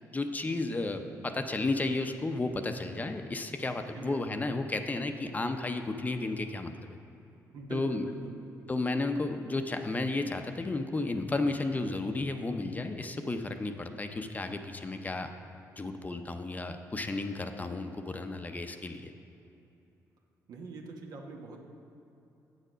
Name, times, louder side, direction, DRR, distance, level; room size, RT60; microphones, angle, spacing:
voice 1, 0.1-6.9 7.7-8.1 8.7-15.3 15.8-19.1, left 2 dB, 25° left, 7 dB, 0.6 m, -33 dB
voice 2, 7.5-8.7 20.5-21.6, right 3 dB, 70° right, 2 dB, 1.1 m, -43 dB
7.9 x 6.7 x 5.1 m, 2.8 s
cardioid pair, 75°, 7 cm